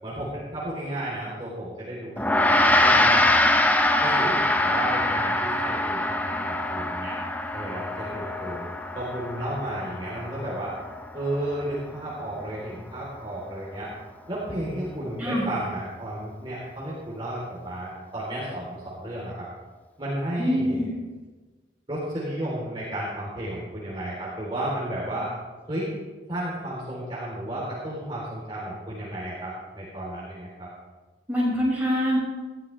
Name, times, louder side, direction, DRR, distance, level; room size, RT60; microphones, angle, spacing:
voice 1, 0.0-3.3 4.0-7.2 7.5-8.7 8.9-10.8 11.1-13.9 14.3-19.5 20.0-20.9 21.9-25.3 25.7-25.9 26.3-30.7, right 1 dB, 30° right, -7 dB, 3.4 m, -33 dB
Gong, 2.2-11.7, left 1 dB, 10° left, 0.7 m, -24 dB
voice 2, 15.2-15.5 20.4-20.9 31.3-32.2, equal, 10° right, -6 dB, 5.2 m, -24 dB
19.5 x 13.5 x 3.3 m, 1.3 s
head